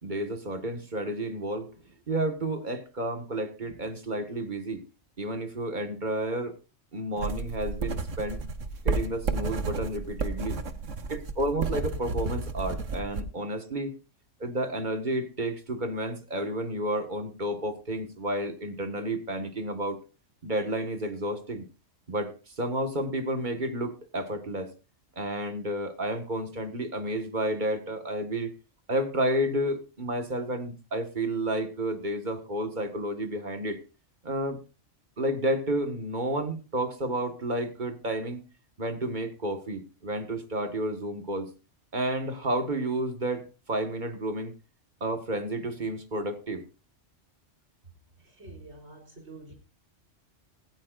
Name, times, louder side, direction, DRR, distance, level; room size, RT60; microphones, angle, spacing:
voice 1, 0.0-1.7 2.1-4.8 5.2-6.5 6.9-8.4 8.9-10.6 11.1-13.9 14.4-20.0 20.4-21.7 22.1-24.7 25.2-28.5 28.9-33.8 34.2-34.6 35.2-38.4 38.8-41.5 41.9-44.5 45.0-46.6, right 1 dB, 40° right, 7 dB, 1.9 m, -31 dB
sound 1, 7.2-13.2, right 4 dB, 85° right, 1.6 m, -32 dB
voice 2, 48.4-49.5, right 2 dB, 60° right, 1 dB, 4.4 m, -46 dB
17.0 x 16.0 x 2.6 m, 0.32 s
omnidirectional pair, 1.2 m